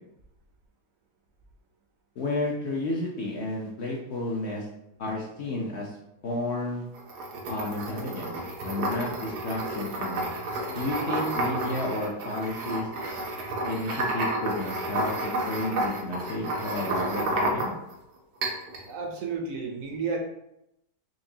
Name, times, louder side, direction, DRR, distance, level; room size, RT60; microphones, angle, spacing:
voice 1, 2.2-4.7 5.0-6.0 6.2-6.9 7.5-8.3 8.6-10.3 10.7-12.9 13.6-17.7, left 2 dB, 60° left, -2 dB, 0.7 m, -32 dB
sound 1, 6.9-17.9 18.4-18.9, right 1 dB, 90° right, 1.3 m, -31 dB
voice 2, 18.8-20.2, right 5 dB, 70° right, 2 dB, 0.9 m, -32 dB
4.5 x 2.7 x 2.7 m, 0.83 s
omnidirectional pair, 1.7 m